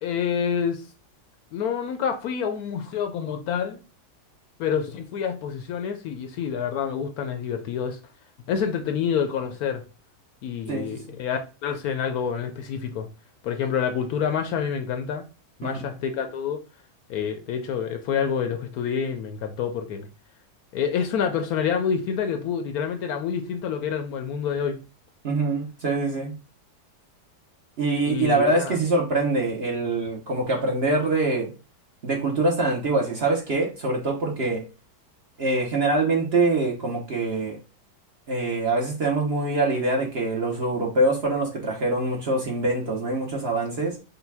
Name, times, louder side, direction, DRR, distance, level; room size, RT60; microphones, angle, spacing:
voice 1, 0.0-0.9 1.5-3.8 4.6-8.0 8.5-9.8 10.4-13.1 13.4-15.2 15.6-16.6 17.1-20.1 20.7-24.8 28.1-28.8, left 7 dB, 70° left, 1.0 m, -27 dB
voice 2, 25.2-26.3 27.8-31.5 32.0-34.6 35.4-37.6 38.3-43.9, right 2 dB, 50° right, 0.9 m, -24 dB
5.6 x 2.2 x 3.3 m
omnidirectional pair, 1.8 m